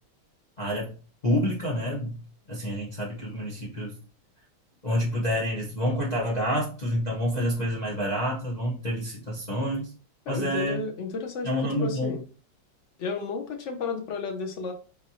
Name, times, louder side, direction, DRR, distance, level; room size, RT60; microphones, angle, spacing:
voice 1, 0.6-0.9 1.2-2.2 2.5-3.9 4.8-9.9 10.3-10.8 11.4-12.2, equal, 30° left, -4 dB, 0.9 m, -28 dB
voice 2, 9.5-9.8 10.3-12.2 13.0-14.7, left 5 dB, 75° left, 3 dB, 0.6 m, -33 dB
4.4 x 4.1 x 2.8 m, 0.38 s
omnidirectional pair, 2.2 m